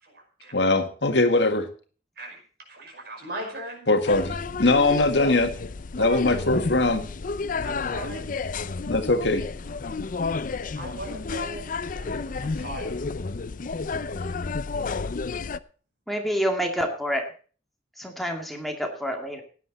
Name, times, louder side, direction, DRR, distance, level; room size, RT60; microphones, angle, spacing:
voice 1, 0.0-0.6 2.2-2.4 2.7-3.9 6.0-6.3 7.6-8.2 10.8-11.6 11.9-13.0, right 2 dB, 60° right, 3 dB, 5.4 m, -38 dB
voice 2, 0.5-1.7 3.9-5.5 6.0-7.1 8.9-9.4, left 2 dB, 75° left, 7 dB, 1.8 m, -21 dB
sound 1, 4.1-15.6, left 4 dB, 50° left, 0.5 m, -31 dB
voice 3, 16.1-17.2 18.0-19.4, equal, ahead, 2 dB, 2.2 m, -28 dB
16.0 x 10.0 x 4.1 m, 0.40 s
head